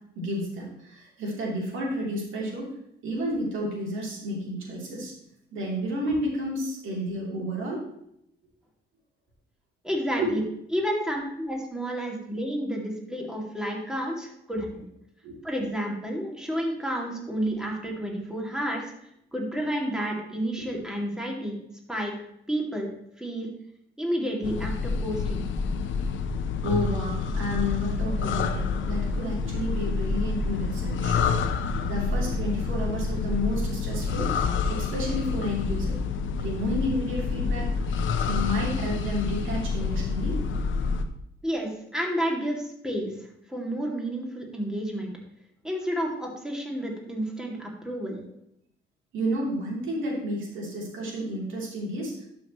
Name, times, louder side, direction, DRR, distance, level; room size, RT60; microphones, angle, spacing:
voice 1, 0.1-2.7 3.0-5.1 5.5-7.8 10.2-10.3 15.2-15.3 26.6-31.2 31.8-34.3 34.7-35.9 36.4-40.4 49.1-52.2, equal, 80° right, -3 dB, 3.3 m, -31 dB
voice 2, 9.8-10.4 10.7-14.9 15.4-18.8 19.3-21.6 21.9-22.1 22.5-22.9 23.2-23.5 24.0-25.5 41.4-43.1 43.5-45.1 45.6-48.2, equal, 5° right, -1 dB, 2.4 m, -30 dB
sound 1, 24.4-41.0, left 4 dB, 75° left, 0.8 m, -28 dB
12.0 x 6.0 x 3.1 m, 0.75 s
cardioid pair, 90°, 20 cm